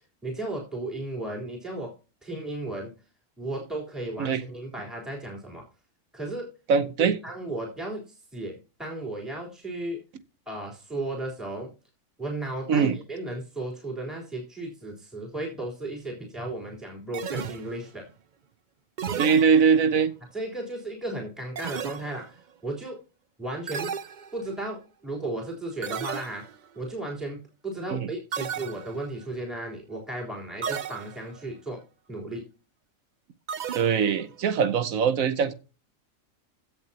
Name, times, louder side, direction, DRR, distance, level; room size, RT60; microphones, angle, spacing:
voice 1, 0.2-1.9 2.2-2.9 3.4-5.6 6.1-6.5 7.0-10.0 10.5-11.7 12.2-18.1 20.3-23.0 23.4-23.9 24.3-26.4 26.7-31.8 32.1-32.4, right 2 dB, ahead, 3.7 m, -35 dB
voice 2, 6.7-7.2 12.7-13.0 19.2-20.1 27.9-28.1 33.7-35.5, right 6 dB, 85° right, 1.3 m, -22 dB
sound 1, 17.1-18.0 19.0-20.0 21.6-22.4 23.7-24.7 25.8-26.7 28.3-29.2 30.6-31.4 33.5-34.3, right 7 dB, 50° right, 0.6 m, -35 dB
16.5 x 7.0 x 2.9 m
omnidirectional pair, 1.4 m